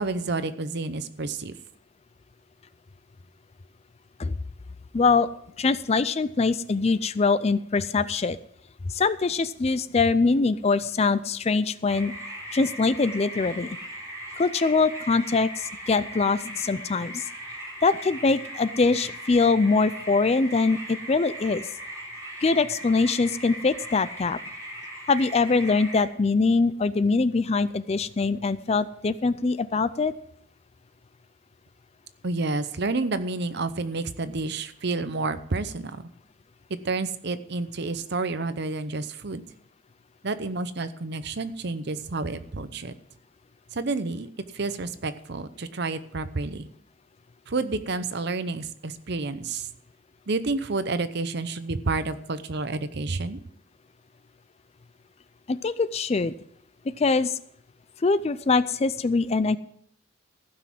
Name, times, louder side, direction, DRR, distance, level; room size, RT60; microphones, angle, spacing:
voice 1, 0.0-1.5 32.2-36.0 36.8-39.4 40.2-42.9 43.7-44.3 44.5-46.7 47.5-49.7 50.3-53.4, right 3 dB, 55° right, 12 dB, 0.8 m, -29 dB
voice 2, 4.9-5.3 5.6-8.4 8.9-12.1 12.5-13.7 14.4-17.2 17.8-21.6 22.4-24.4 25.1-30.1 55.5-56.3 57.0-57.4 58.0-59.6, left 4 dB, 30° left, 15 dB, 0.4 m, -23 dB
sound 1, 11.9-26.0, equal, 15° right, 4.1 m, -39 dB
15.0 x 6.2 x 7.6 m, 0.70 s
head